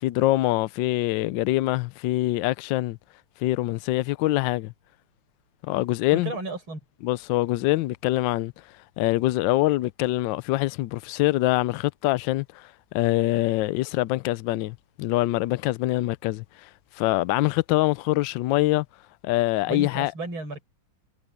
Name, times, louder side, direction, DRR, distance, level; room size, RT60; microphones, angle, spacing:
voice 1, 0.0-3.0 3.4-4.7 5.6-6.3 7.0-8.5 9.0-16.7 16.9-18.9 19.2-20.1, left 17 dB, 75° left, 1.2 m, -24 dB
voice 2, 6.1-6.8 19.7-20.6, right 3 dB, 80° right, 7.7 m, -33 dB
omnidirectional pair, 2.3 m